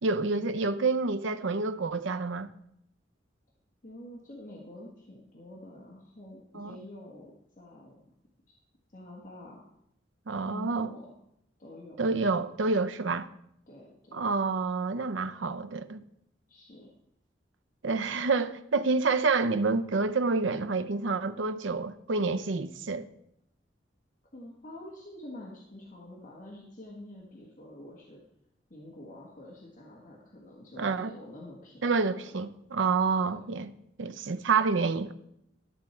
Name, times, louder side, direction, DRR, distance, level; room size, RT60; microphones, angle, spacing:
voice 1, 0.0-2.5 6.5-6.8 10.3-10.9 12.0-13.3 14.1-16.0 17.8-23.1 30.8-31.1 31.8-33.7 34.0-35.1, right 4 dB, 85° right, 0.6 m, -28 dB
voice 2, 3.8-8.1 8.9-9.6 10.4-11.2 11.6-12.0 13.0-13.1 13.7-14.2 16.5-17.0 24.3-28.2 28.7-32.3 33.2-33.3, left 1 dB, 40° left, 1.6 m, -47 dB
13.0 x 7.2 x 4.4 m
head